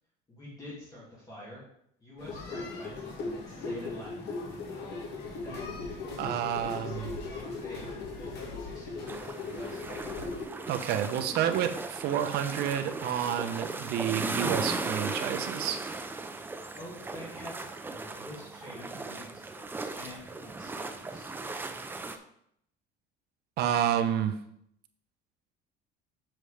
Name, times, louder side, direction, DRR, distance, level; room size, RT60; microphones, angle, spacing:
voice 1, 0.3-1.6 2.0-4.3 5.4-9.8 16.8-21.3, left 1 dB, 20° left, -7 dB, 2.4 m, -47 dB
sound 1, 2.2-10.5, left 3 dB, 70° left, 2.0 m, -38 dB
voice 2, 6.2-7.1 10.7-15.8 23.6-24.4, right 9 dB, 60° right, 8 dB, 0.8 m, -29 dB
sound 2, 9.1-22.2, right 3 dB, 10° right, 0.4 m, -37 dB
7.6 x 6.2 x 3.4 m, 0.72 s
cardioid pair, 150°, 18 cm